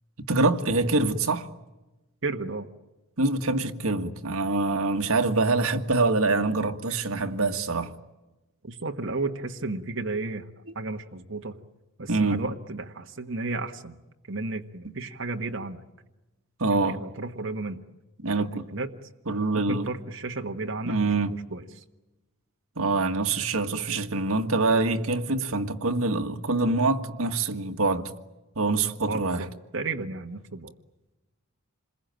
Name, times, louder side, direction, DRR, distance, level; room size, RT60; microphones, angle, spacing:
voice 1, 0.2-1.5 3.2-7.9 12.1-12.4 16.6-17.0 18.2-18.7 19.3-19.9 20.9-21.4 22.8-28.1 28.6-29.5, right 3 dB, 75° right, 1.8 m, -25 dB
voice 2, 2.2-2.7 8.6-10.5 10.7-11.5 12.0-13.9 14.3-15.8 16.7-17.8 18.4-18.9 19.5-21.0 21.3-21.6 29.1-29.5 29.7-30.7, right 3 dB, 55° right, 1.4 m, -33 dB
27.5 x 21.5 x 9.1 m
head